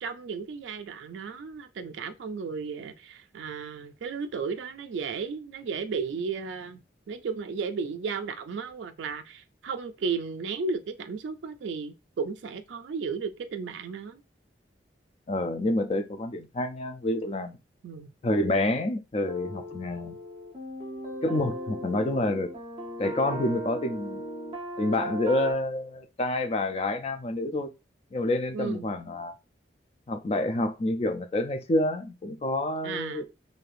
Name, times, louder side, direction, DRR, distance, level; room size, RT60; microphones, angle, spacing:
voice 1, 0.0-6.8 7.1-14.2 17.8-18.1 28.5-28.9 32.8-33.2, right 5 dB, 75° right, 0.3 m, -34 dB
voice 2, 15.3-17.6 18.2-20.1 21.2-22.5 23.0-24.2 24.8-27.7 28.1-29.3 30.1-33.2, left 1 dB, 35° left, 0.4 m, -28 dB
sound 1, 19.3-25.5, equal, 30° right, 0.8 m, -37 dB
3.2 x 2.7 x 2.4 m
head